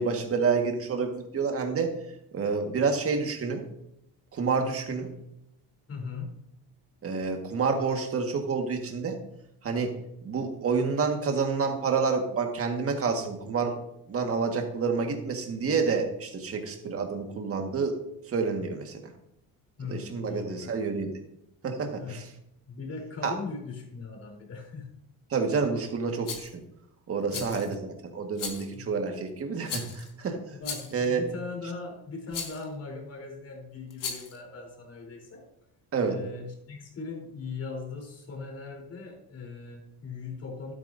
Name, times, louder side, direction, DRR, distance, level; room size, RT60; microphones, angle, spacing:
voice 1, 0.0-2.0 2.3-3.6 4.3-5.1 7.0-9.2 9.6-9.9 10.2-13.7 14.1-18.0 18.3-19.0 19.9-21.1 21.6-22.3 23.2-23.3 25.3-26.6 27.1-30.4 30.9-31.2 35.9-36.1, right 5 dB, 35° right, 3 dB, 1.7 m, -28 dB
voice 2, 5.9-6.4 19.8-20.8 22.0-22.3 22.7-24.9 27.3-27.6 28.7-29.0 30.5-35.5 36.0-40.7, left 4 dB, 40° left, 0 dB, 3.8 m, -39 dB
Rattle, 26.2-26.5 27.3-27.7 28.4-28.7 29.7-30.1 30.6-31.0 32.3-32.6 33.9-34.4, left 6 dB, 55° left, 2.0 m, -36 dB
12.0 x 9.4 x 2.7 m, 0.78 s
cardioid pair, 130°, 38 cm